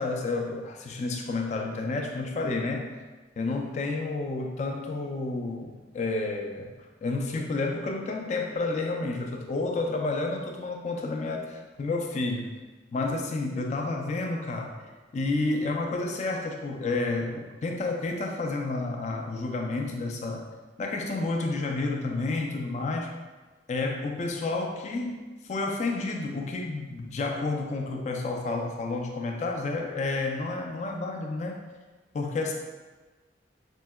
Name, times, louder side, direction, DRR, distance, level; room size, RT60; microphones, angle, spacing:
voice 1, 0.0-2.9 3.4-6.7 7.0-12.5 12.9-14.7 15.1-20.5 20.8-23.1 23.7-31.6 32.1-32.5, left 3 dB, 40° left, 2 dB, 0.3 m, -30 dB
4.4 x 2.1 x 2.2 m, 1.3 s
head